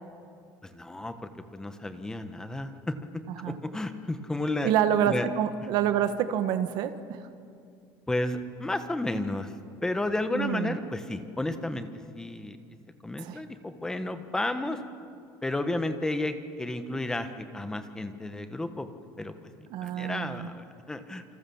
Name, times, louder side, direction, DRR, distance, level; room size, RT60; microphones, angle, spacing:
voice 1, 0.6-4.7 5.1-5.3 8.1-9.5 9.8-11.9 12.1-12.6 13.0-14.8 15.4-18.9 19.2-21.2, left 2 dB, 5° left, 9 dB, 1.3 m, -32 dB
voice 2, 4.6-7.2 10.3-10.8 13.2-13.4 19.7-20.5, right 9 dB, 55° right, 9 dB, 1.4 m, -27 dB
28.0 x 26.0 x 7.2 m, 2.4 s
cardioid pair, 165°, 9 cm